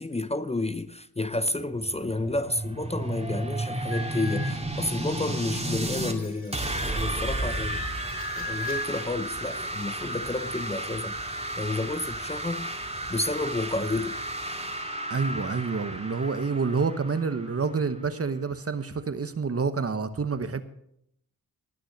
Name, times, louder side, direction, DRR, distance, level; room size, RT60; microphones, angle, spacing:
voice 1, 0.0-7.9 8.4-11.3 11.6-12.7 13.1-14.2, left 2 dB, 20° left, 0.7 m, -31 dB
sound 1, 1.6-6.1 6.5-18.1, right 1 dB, 15° right, 2.2 m, -33 dB
sound 2, 3.9-9.0, left 2 dB, 40° left, 5.4 m, -39 dB
voice 2, 15.1-20.6, right 5 dB, 40° right, 1.1 m, -28 dB
18.5 x 6.3 x 6.5 m
cardioid pair, 70°, 35 cm